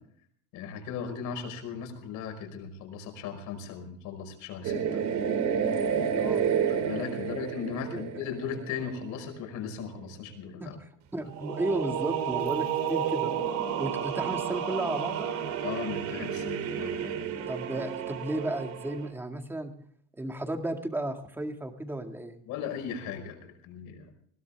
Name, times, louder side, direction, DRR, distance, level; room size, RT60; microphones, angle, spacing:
voice 1, 0.5-5.0 6.7-10.8 15.6-17.3 22.5-24.1, left 7 dB, 55° left, 6 dB, 5.3 m, -37 dB
sound 1, 4.6-9.2 11.3-19.1, right 8 dB, 50° right, 2.7 m, -31 dB
voice 2, 11.1-13.3 13.8-15.3 17.5-19.7 20.2-22.4, right 1 dB, 5° right, 5 dB, 1.9 m, -33 dB
21.0 x 17.5 x 3.5 m, 0.62 s
cardioid pair, 145°, 37 cm